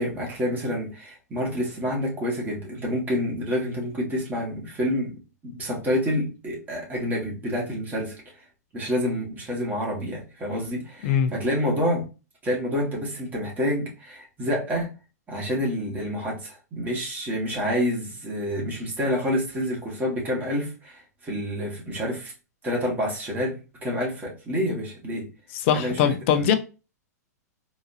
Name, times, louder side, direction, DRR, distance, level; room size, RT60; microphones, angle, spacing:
voice 1, 0.0-5.1 5.4-8.2 8.7-12.1 12.4-14.9 15.3-22.3 22.6-25.3 25.7-26.5, equal, 20° right, 1.8 m, -28 dB
voice 2, 25.6-26.5, left 8 dB, 45° left, 0.6 m, -21 dB
3.9 x 2.8 x 2.7 m
figure-of-eight pair, 105°, 9 cm